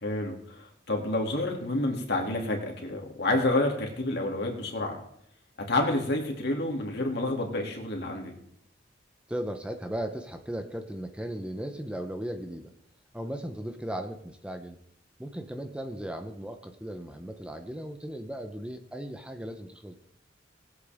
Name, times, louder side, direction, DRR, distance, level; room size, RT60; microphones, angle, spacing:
voice 1, 0.0-5.0 5.7-8.3, left 2 dB, 60° left, 2 dB, 2.4 m, -29 dB
voice 2, 9.3-12.7 13.1-14.8 15.2-20.1, right 1 dB, 5° right, 7 dB, 0.7 m, -37 dB
19.5 x 8.2 x 3.5 m, 0.72 s
head